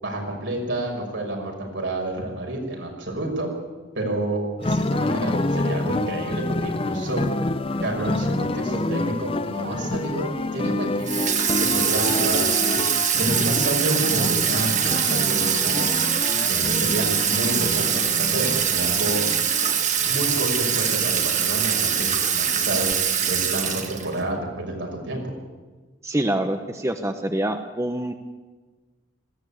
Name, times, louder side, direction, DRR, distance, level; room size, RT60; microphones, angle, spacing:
voice 1, 0.0-3.5 3.9-7.2 7.8-11.2 11.6-12.8 13.2-15.9 16.3-19.2 20.1-22.9 23.3-25.3, right 1 dB, 75° right, 0 dB, 6.1 m, -29 dB
sound 1, 4.6-22.9, left 2 dB, 30° left, 0.6 m, -29 dB
Water tap faucet / Sink (filling or washing), 11.0-24.2, right 8 dB, 40° right, 1.7 m, -23 dB
voice 2, 26.0-28.1, right 1 dB, 15° right, 6 dB, 1.0 m, -25 dB
20.0 x 16.0 x 8.5 m, 1.3 s
head